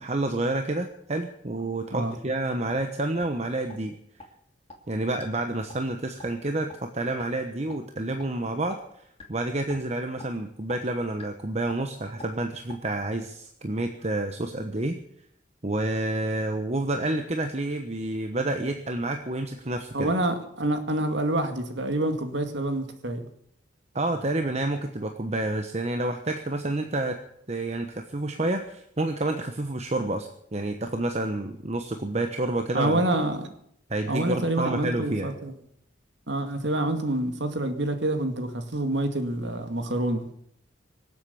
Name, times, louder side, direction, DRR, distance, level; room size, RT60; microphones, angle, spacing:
voice 1, 0.0-4.0 4.9-8.8 9.3-15.0 15.6-20.1 23.9-27.2 27.5-33.0 33.9-35.3, right 2 dB, 35° right, 5 dB, 1.1 m, -29 dB
sound 1, 2.7-2.8 3.2-3.3 3.7-3.8 4.2-4.3 4.7-4.8 5.2-5.3 5.7-5.9 6.2-6.3 6.7-6.8 7.2-7.3 7.7-7.8 8.2-8.3 8.7-8.8 9.2-9.4 9.7-9.8 10.2-10.3 10.7-10.8 11.2-11.3 11.7-11.8 12.2-12.3 12.7-12.8, left 3 dB, 30° left, 2.5 m, -43 dB
voice 2, 19.9-23.3 32.7-33.5 34.1-35.5 36.3-40.3, right 1 dB, 65° right, 6 dB, 2.1 m, -27 dB
24.5 x 8.2 x 7.0 m, 0.70 s
head